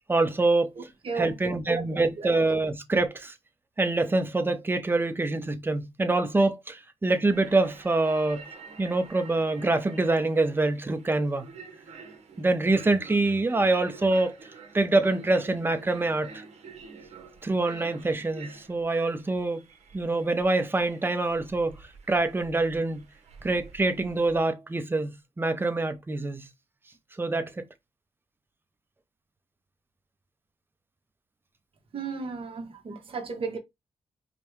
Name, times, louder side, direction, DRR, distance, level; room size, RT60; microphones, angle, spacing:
voice 1, 0.1-0.7 1.2-3.3 3.8-8.4 8.8-11.5 12.4-14.4 14.7-16.4 17.4-19.6 19.9-21.8 22.1-23.1 23.4-25.1 25.4-26.5 27.2-27.6, right 2 dB, 20° right, 0.6 m, -25 dB
voice 2, 0.8-1.6 2.2-2.3 31.9-33.6, right 5 dB, 50° right, 1.2 m, -35 dB
sound 1, 7.3-24.4, right 4 dB, 70° right, 1.1 m, -48 dB
5.1 x 2.2 x 3.1 m
cardioid pair, 105°, 12 cm